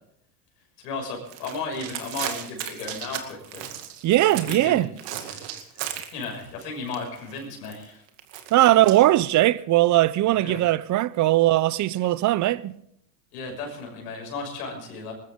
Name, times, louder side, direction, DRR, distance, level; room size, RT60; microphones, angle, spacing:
voice 1, 0.8-3.7 4.5-4.8 5.2-8.0 10.3-10.6 13.3-15.1, left 4 dB, 90° left, 6.3 m, -35 dB
sound 1, 1.2-4.7 5.0-6.6 6.9-9.0, right 11 dB, 65° right, 2.3 m, -35 dB
voice 2, 4.0-4.9 8.5-12.8, right 15 dB, 40° right, 0.7 m, -20 dB
21.0 x 14.0 x 3.7 m
supercardioid pair, 100°, 47 cm